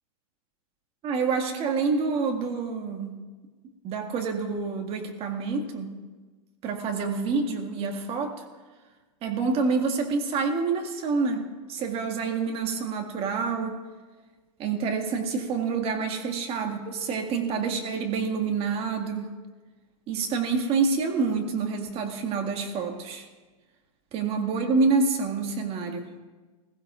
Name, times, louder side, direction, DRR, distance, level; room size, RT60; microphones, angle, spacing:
voice 1, 1.0-3.2 3.8-5.9 6.6-8.4 9.2-11.4 11.7-13.8 14.6-19.3 20.1-23.3 24.1-26.1, right 4 dB, 35° right, 4 dB, 2.1 m, -27 dB
21.0 x 15.5 x 2.6 m, 1.3 s
hypercardioid pair, 125°, 18 cm